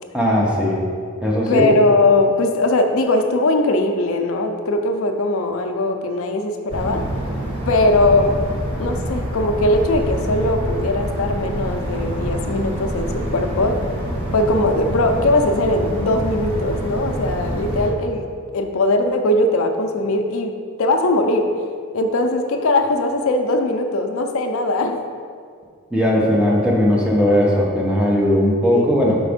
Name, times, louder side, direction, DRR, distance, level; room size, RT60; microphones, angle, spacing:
voice 1, 0.1-0.8 1.2-1.7 25.9-29.2, left 1 dB, 5° right, -4 dB, 0.9 m, -18 dB
voice 2, 1.5-7.0 7.7-8.4 8.8-13.8 14.3-18.3 18.5-20.5 20.8-21.5 21.9-25.0 28.7-29.0, left 2 dB, 65° left, 5 dB, 0.5 m, -20 dB
sound 1, 6.7-17.9, equal, 25° right, 1.1 m, -26 dB
5.2 x 4.1 x 5.0 m, 2.1 s
head